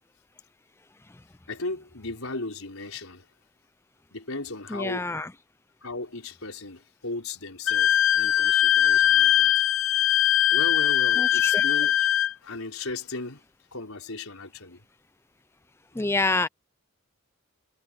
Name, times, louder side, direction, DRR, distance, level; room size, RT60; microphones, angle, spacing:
voice 1, 1.5-3.2 4.1-5.1 5.8-9.5 10.5-12.1 12.4-13.4 13.7-14.8, left 2 dB, 90° left, 4.7 m, -36 dB
voice 2, 4.7-5.3 11.2-11.6 16.0-16.5, left 3 dB, 10° left, 0.4 m, -27 dB
Wind instrument woodwind instrument, 7.7-12.3, left 11 dB, 70° left, 0.7 m, -21 dB
head